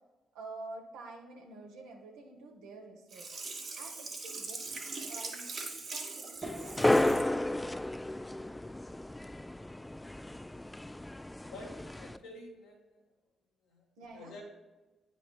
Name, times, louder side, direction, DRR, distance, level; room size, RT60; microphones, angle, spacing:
voice 1, 0.3-3.3 3.7-4.8 5.1-7.8 14.0-14.3, right 3 dB, 80° right, 1 dB, 1.0 m, -49 dB
Sink (filling or washing), 3.1-7.3 7.7-7.8, right 3 dB, 55° right, 1.5 m, -41 dB
sound 1, 6.4-12.2, left 1 dB, 15° left, 0.3 m, -32 dB
voice 2, 11.5-13.0 13.6-13.8 14.1-14.4, left 2 dB, 85° left, -2 dB, 1.7 m, -49 dB
9.7 x 5.1 x 2.3 m, 1.2 s
hypercardioid pair, 45°, 0 cm